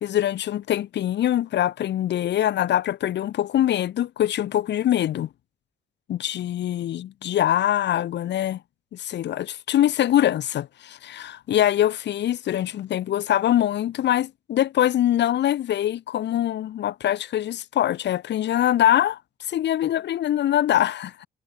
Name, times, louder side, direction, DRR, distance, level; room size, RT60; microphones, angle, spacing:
voice 1, 0.0-5.3 6.1-8.6 8.9-19.2 19.5-21.3, left 12 dB, 60° left, 0.7 m, -23 dB
cardioid pair, 90°, 20 cm